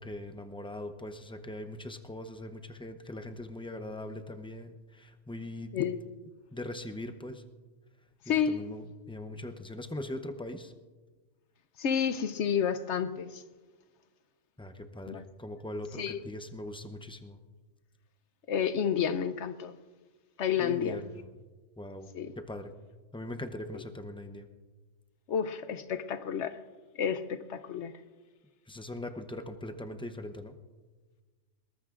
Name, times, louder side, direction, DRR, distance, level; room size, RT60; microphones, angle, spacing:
voice 1, 0.0-5.7 6.5-7.4 8.3-10.7 14.6-17.4 20.6-21.3 21.8-22.1 22.4-22.7 23.1-24.5 28.7-30.5, left 1 dB, 10° left, 0.4 m, -41 dB
voice 2, 5.7-6.1 8.3-8.6 11.8-13.4 15.1-15.2 16.0-16.2 18.5-19.8 20.4-21.0 22.1-22.3 25.3-26.6 27.0-27.9, left 8 dB, 65° left, 0.9 m, -30 dB
21.5 x 19.0 x 2.5 m
omnidirectional pair, 1.4 m